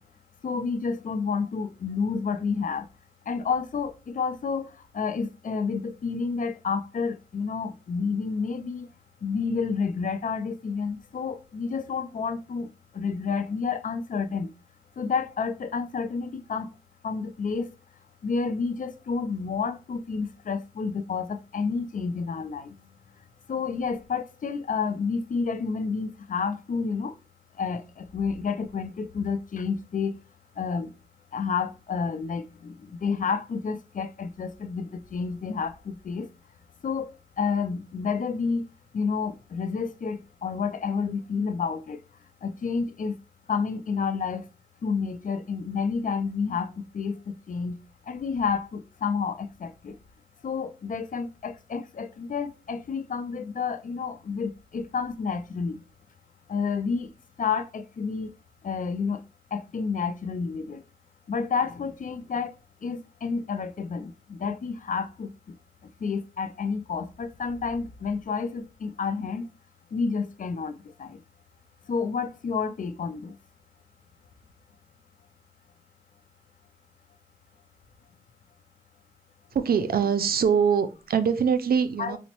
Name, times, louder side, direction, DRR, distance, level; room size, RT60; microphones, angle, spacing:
voice 1, 0.4-2.8 3.3-4.7 4.9-8.9 9.2-12.7 13.0-14.5 15.0-16.7 17.0-17.7 18.2-22.7 23.5-27.1 27.6-30.1 30.6-30.9 31.3-32.7 33.0-36.3 36.8-37.1 37.4-38.7 38.9-42.0 42.4-43.1 43.5-44.4 44.8-46.7 46.9-47.8 48.1-49.9 50.4-55.8 56.5-57.1 57.4-58.3 58.6-59.2 59.5-60.8 61.3-62.5 62.8-65.3 66.0-69.4 69.9-70.7 71.0-71.2 71.9-73.3 82.0-82.2, left 5 dB, 60° left, 0.4 m, -30 dB
voice 2, 79.5-82.2, right 7 dB, 80° right, 0.4 m, -23 dB
3.9 x 2.1 x 2.9 m
cardioid pair, 45°, 15 cm